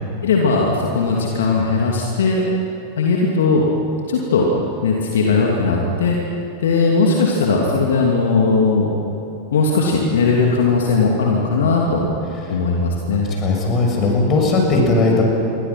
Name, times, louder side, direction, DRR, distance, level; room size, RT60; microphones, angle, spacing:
voice 1, 0.2-2.4 3.0-3.7 4.1-4.5 4.8-8.9 9.5-12.1 12.5-13.3, left 4 dB, 60° left, -1 dB, 2.8 m, -18 dB
voice 2, 13.4-15.2, left 3 dB, 30° left, 0 dB, 6.9 m, -17 dB
29.0 x 23.5 x 6.1 m, 2.9 s
figure-of-eight pair, 90°, 0 cm